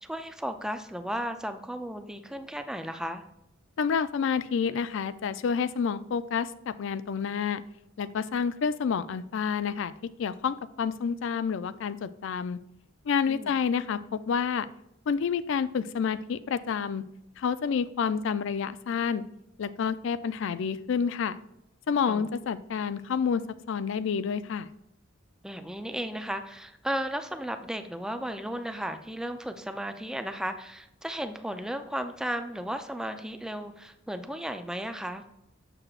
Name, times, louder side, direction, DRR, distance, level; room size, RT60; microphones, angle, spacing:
voice 1, 0.0-3.2 13.3-13.5 22.1-22.3 25.4-35.2, equal, 5° right, 8 dB, 0.4 m, -34 dB
voice 2, 3.8-7.6 8.0-9.9 10.2-12.6 13.1-14.7 15.1-17.0 17.4-19.2 19.6-21.4 21.9-23.4 23.7-24.7, left 6 dB, 65° left, 15 dB, 0.4 m, -29 dB
7.3 x 6.7 x 2.4 m, 0.82 s
head